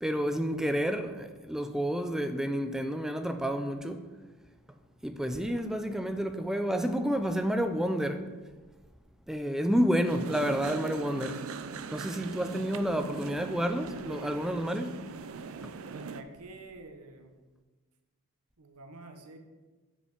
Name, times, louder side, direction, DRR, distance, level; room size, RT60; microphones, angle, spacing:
voice 1, 0.0-4.0 5.0-8.2 9.3-11.4 11.9-15.0, equal, ahead, 0.4 m, -30 dB
sound 1, 10.0-16.2, right 5 dB, 65° right, 0.4 m, -40 dB
voice 2, 15.9-17.3 18.6-19.4, right 2 dB, 85° right, 1.0 m, -48 dB
6.5 x 5.3 x 5.9 m
head